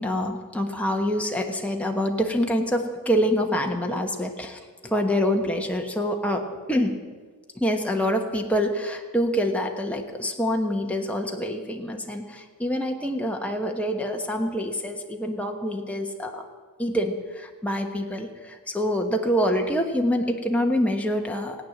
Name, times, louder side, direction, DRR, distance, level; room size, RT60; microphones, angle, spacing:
voice 1, 0.0-7.0 7.6-16.5 16.8-21.6, equal, 5° left, 2 dB, 1.2 m, -26 dB
18.0 x 9.1 x 7.7 m, 1.5 s
head